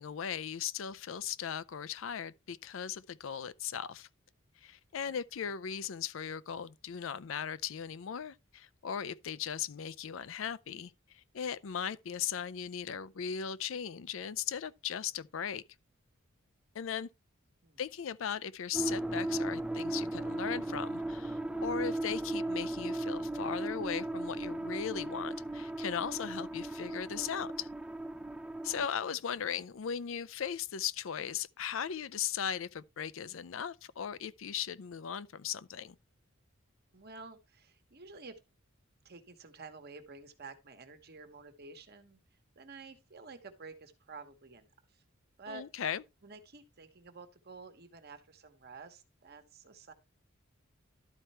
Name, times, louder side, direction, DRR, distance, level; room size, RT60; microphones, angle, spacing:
voice 1, 0.0-4.1 4.6-15.6 16.7-17.1 17.8-27.7 28.6-35.9 45.5-46.0, left 8 dB, 70° left, 0.5 m, -38 dB
voice 2, 5.0-5.5 17.6-17.8 29.3-29.4 36.9-38.4 39.0-42.2 42.5-45.0 45.4-45.7 46.2-49.9, right 4 dB, 50° right, 1.3 m, -51 dB
sound 1, 18.7-28.9, right 1 dB, 5° right, 0.4 m, -36 dB
12.0 x 4.5 x 4.2 m
head